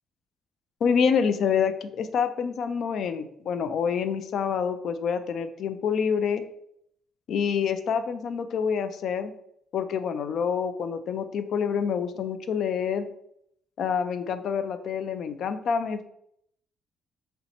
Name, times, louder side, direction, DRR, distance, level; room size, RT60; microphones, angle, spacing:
voice 1, 0.8-6.4 7.3-9.3 9.7-13.1 13.8-16.1, left 6 dB, 70° left, 10 dB, 0.4 m, -27 dB
3.2 x 2.9 x 4.1 m, 0.72 s
cardioid pair, 90°, 0 cm